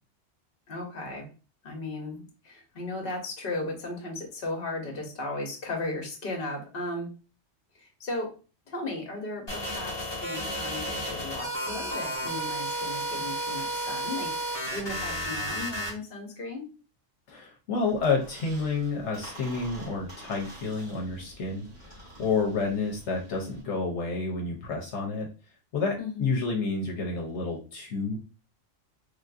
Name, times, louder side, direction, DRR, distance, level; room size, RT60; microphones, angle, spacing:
voice 1, 0.7-1.3 1.6-7.1 7.7-8.3 8.7-16.7 26.0-26.3, left 2 dB, 55° left, 1 dB, 1.0 m, -36 dB
sound 1, 9.5-15.9, right 1 dB, 25° left, 1.0 m, -32 dB
voice 2, 17.3-25.3 25.7-28.2, left 4 dB, 75° left, 0 dB, 1.0 m, -30 dB
Squeak, 17.8-23.6, right 1 dB, 55° right, 1.6 m, -48 dB
3.3 x 2.5 x 2.5 m, 0.33 s
omnidirectional pair, 1.2 m